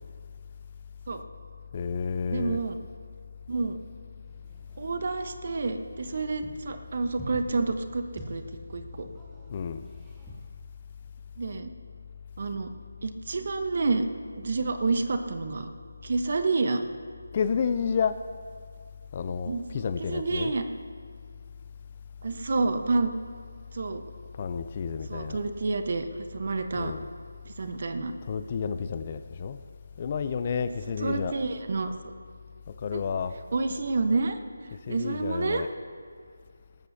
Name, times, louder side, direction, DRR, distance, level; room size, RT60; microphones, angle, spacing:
voice 1, 1.7-2.6 9.5-9.9 17.3-18.2 19.1-20.5 24.3-25.4 26.7-27.1 28.2-29.6 30.0-31.3 32.7-33.4 34.9-35.7, left 6 dB, 30° left, 0.5 m, -30 dB
voice 2, 2.3-2.8 3.5-3.8 4.8-8.4 8.7-9.1 11.4-11.7 12.4-12.7 13.0-14.0 14.3-15.7 16.0-16.8 19.5-20.6 22.2-23.1 23.7-24.0 25.1-26.1 26.3-26.9 27.5-28.1 31.0-32.1 32.9-33.0 33.5-34.4 34.9-35.6, right 3 dB, 50° right, 1.1 m, -29 dB
sound 1, 4.2-10.5, equal, 5° right, 2.0 m, -47 dB
19.0 x 14.0 x 2.8 m
figure-of-eight pair, 160°, 0 cm